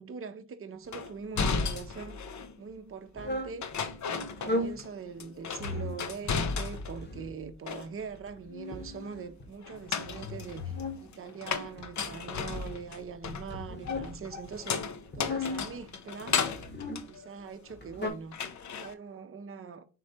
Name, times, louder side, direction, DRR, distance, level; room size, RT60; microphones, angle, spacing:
voice 1, 0.0-2.2 2.6-3.8 4.1-14.7 15.1-16.4 17.1-18.4 18.8-19.9, right 6 dB, 35° right, 0.7 m, -42 dB
sound 1, 0.9-2.6 3.6-4.9 5.2-7.1 7.4-8.2 9.6-17.9 18.3-18.9, left 5 dB, 50° left, 0.8 m, -35 dB
sound 2, 3.2-3.6 4.3-4.8 5.6-6.0 6.7-7.4 8.3-9.5 10.0-11.0 11.8-12.8 13.5-14.2 15.1-15.7 16.4-17.1 17.7-18.1, left 2 dB, 30° left, 1.2 m, -36 dB
3.8 x 3.2 x 4.1 m
hypercardioid pair, 40°, 37 cm